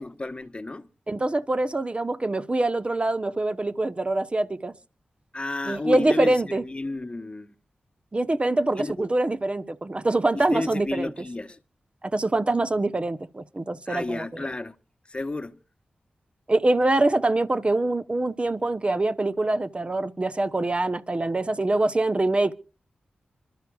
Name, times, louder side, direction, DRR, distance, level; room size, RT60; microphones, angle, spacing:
voice 1, 0.0-0.9 5.3-7.5 8.8-9.1 10.3-11.6 13.9-14.8 15.1-15.6, left 2 dB, 30° left, 1.1 m, -32 dB
voice 2, 1.1-4.7 5.7-6.6 8.1-11.1 12.0-14.5 16.5-22.5, right 2 dB, 35° right, 1.0 m, -24 dB
25.5 x 12.5 x 2.4 m
cardioid pair, 45°, 3 cm